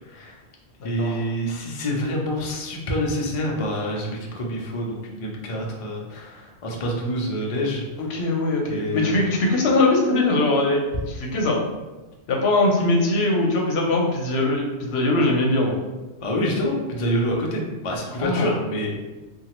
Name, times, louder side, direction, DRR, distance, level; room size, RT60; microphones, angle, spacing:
voice 1, 0.1-0.4 0.8-8.1 8.7-9.3 16.2-19.0, equal, 50° left, -1 dB, 0.4 m, -27 dB
voice 2, 0.8-1.2 8.0-11.6 12.3-15.7 18.2-18.5, left 2 dB, 70° left, 0 dB, 0.8 m, -21 dB
2.9 x 2.2 x 2.9 m, 1.2 s
omnidirectional pair, 1.2 m